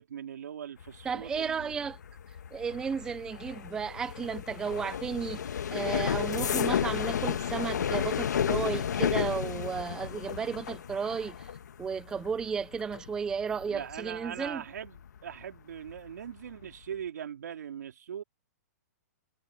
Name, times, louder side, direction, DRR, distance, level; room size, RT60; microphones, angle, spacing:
voice 1, 0.0-1.9 13.7-18.2, right 9 dB, 80° right, 3.5 m, -41 dB
sound 1, 0.8-15.4 15.8-16.2 16.5-16.8, left 8 dB, 85° left, 1.5 m, -33 dB
voice 2, 1.0-2.0 2.3-5.4 5.7-11.5 11.8-14.6, right 6 dB, 5° right, 0.4 m, -34 dB
hypercardioid pair, 165°, 9 cm